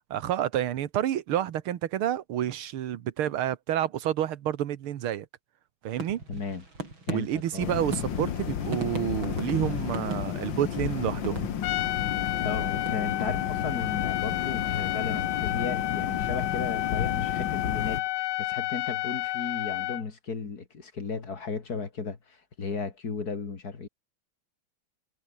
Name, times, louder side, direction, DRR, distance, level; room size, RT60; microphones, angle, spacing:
voice 1, 0.1-5.3 5.8-6.2 7.1-11.6, right 11 dB, 85° right, 2.0 m, -29 dB
sound 1, 5.9-11.9 12.4-13.7, right 2 dB, 65° right, 7.5 m, -40 dB
voice 2, 6.3-6.6 7.1-8.0 12.4-23.9, left 5 dB, 45° left, 2.8 m, -35 dB
sound 2, 7.6-18.0, left 9 dB, 65° left, 2.0 m, -32 dB
Trumpet, 11.6-20.0, left 17 dB, 85° left, 1.4 m, -31 dB
omnidirectional pair, 2.3 m